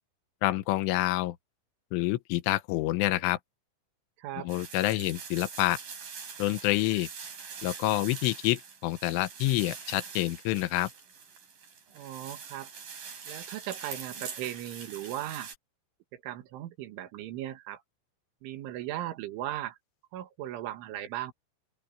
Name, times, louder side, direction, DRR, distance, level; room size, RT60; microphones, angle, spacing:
voice 1, 0.4-1.4 1.9-3.4 4.4-5.8 6.4-7.1 7.6-10.9, left 17 dB, 85° left, 3.4 m, -27 dB
voice 2, 4.2-4.5 11.9-12.7 13.3-15.5 16.1-17.8 18.4-19.8 20.1-21.3, right 13 dB, 80° right, 4.1 m, -37 dB
sound 1, 4.5-15.6, right 6 dB, 45° right, 5.5 m, -44 dB
open air
omnidirectional pair, 5.7 m